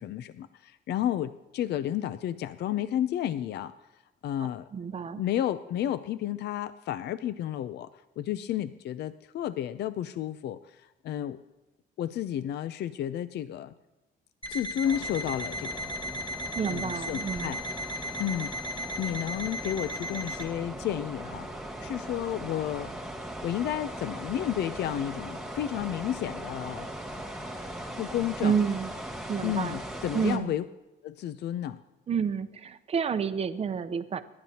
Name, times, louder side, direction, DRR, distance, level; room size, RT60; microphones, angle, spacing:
voice 1, 0.0-3.7 4.2-4.7 5.1-11.4 12.0-13.7 14.5-15.9 16.7-17.6 18.2-22.9 23.4-26.9 28.0-28.6 29.4-30.6 31.0-31.8, left 11 dB, 60° left, 13 dB, 0.5 m, -32 dB
voice 2, 4.7-5.2 16.5-17.6 28.4-28.9 29.3-29.8 30.1-30.5 32.1-34.2, right 6 dB, 30° right, 11 dB, 0.7 m, -29 dB
Alarm, 14.4-20.5, equal, 25° left, 2.7 m, -36 dB
sound 1, 14.8-30.4, right 1 dB, ahead, 1.7 m, -39 dB
27.5 x 12.0 x 2.9 m, 1.0 s
cardioid pair, 140°, 19 cm